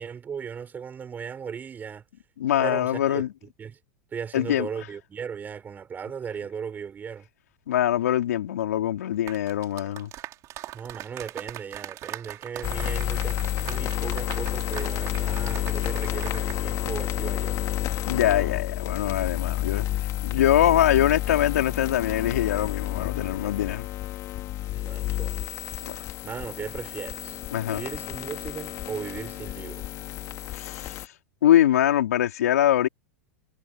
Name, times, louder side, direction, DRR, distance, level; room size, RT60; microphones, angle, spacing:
voice 1, 0.0-2.0 2.6-3.8 4.1-7.3 10.7-17.6 24.7-25.4 26.2-29.8, right 7 dB, 20° right, 5.5 m, -37 dB
voice 2, 2.4-3.3 4.3-4.7 7.7-10.1 18.1-19.9 20.2-23.9 25.9-26.1 27.5-27.8 30.5-31.0 31.4-32.9, left 11 dB, 85° left, 3.8 m, -23 dB
sound 1, 9.1-16.6 16.9-17.1, right 15 dB, 40° right, 4.3 m, -40 dB
sound 2, 12.6-31.1, left 14 dB, 40° left, 2.7 m, -30 dB
supercardioid pair, 125°, 8 cm